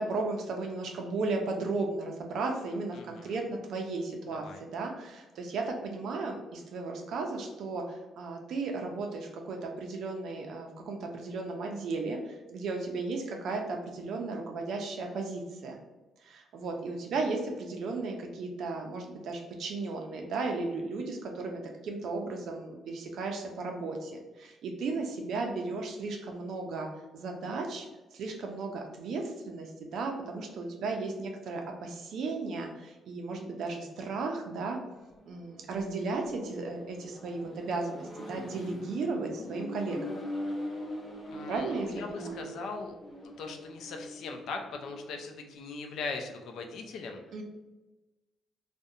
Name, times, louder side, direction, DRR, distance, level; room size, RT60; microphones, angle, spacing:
voice 1, 0.0-15.8 16.2-34.8 35.3-40.0 41.5-42.3 47.3-47.4, right 3 dB, 70° right, 2 dB, 0.4 m, -35 dB
voice 2, 2.9-3.4 4.3-4.6 41.3-42.9 43.4-47.2, left 4 dB, 75° left, 4 dB, 0.4 m, -40 dB
Accelerating revving vroom, 34.8-45.3, left 1 dB, 35° left, 0.8 m, -42 dB
2.4 x 2.1 x 2.6 m, 1.1 s
cardioid pair, 90°, 0 cm